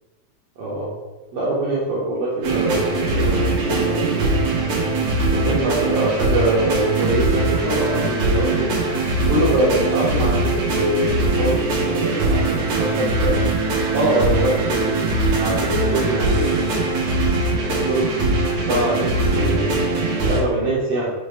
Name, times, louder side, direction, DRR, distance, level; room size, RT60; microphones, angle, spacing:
voice 1, 0.6-0.9 1.3-4.4 5.3-8.7 9.3-13.4 13.9-15.0 15.4-16.7 17.6-19.9 20.2-21.1, right 1 dB, 85° right, -7 dB, 1.4 m, -23 dB
sound 1, 2.4-20.4, right 2 dB, 65° right, 1.7 m, -21 dB
5.9 x 2.4 x 3.3 m, 1.2 s
omnidirectional pair, 3.8 m